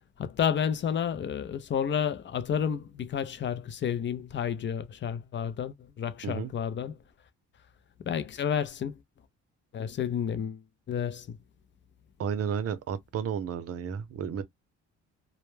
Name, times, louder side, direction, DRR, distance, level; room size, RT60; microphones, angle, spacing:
voice 1, 0.2-7.0 8.0-8.9 9.7-10.6 10.9-11.4, left 8 dB, 40° left, 0.5 m, -30 dB
voice 2, 12.2-14.4, right 7 dB, 50° right, 0.6 m, -32 dB
2.1 x 2.1 x 3.2 m
cardioid pair, 90°, 30 cm